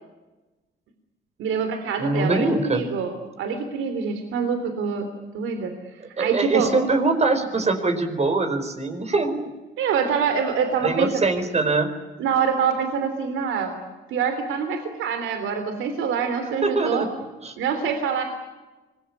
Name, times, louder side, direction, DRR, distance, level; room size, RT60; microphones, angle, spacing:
voice 1, 1.4-5.1 5.3-5.7 6.2-6.7 9.8-11.2 12.2-13.8 14.1-17.1 17.6-18.2, right 6 dB, 85° right, 7 dB, 3.2 m, -25 dB
voice 2, 2.0-2.8 6.2-9.4 10.8-11.9 16.6-17.1 17.4-17.5, right 3 dB, 35° right, 7 dB, 4.7 m, -23 dB
25.5 x 21.0 x 9.8 m, 1.1 s
cardioid pair, 90°, 20 cm